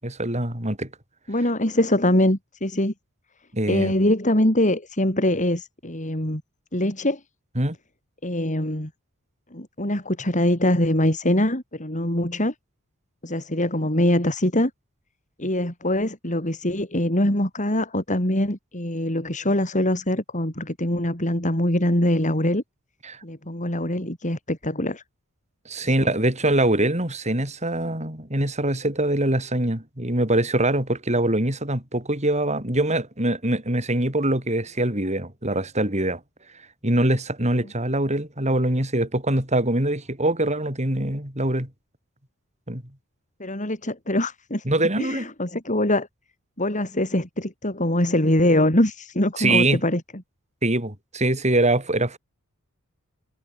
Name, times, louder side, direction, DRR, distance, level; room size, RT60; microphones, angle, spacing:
voice 1, 0.0-0.9 3.5-3.9 7.6-7.8 23.0-23.2 25.7-36.2 36.8-41.7 42.7-42.8 44.7-45.3 49.4-49.8 50.6-52.2, right 1 dB, 30° right, 7.6 m, -23 dB
voice 2, 1.3-2.9 3.7-6.4 6.7-7.2 8.2-8.9 9.5-12.5 13.2-14.7 15.4-22.6 23.2-25.0 25.9-26.1 43.4-44.6 45.0-46.1 46.6-50.0, left 1 dB, 35° left, 6.5 m, -23 dB
head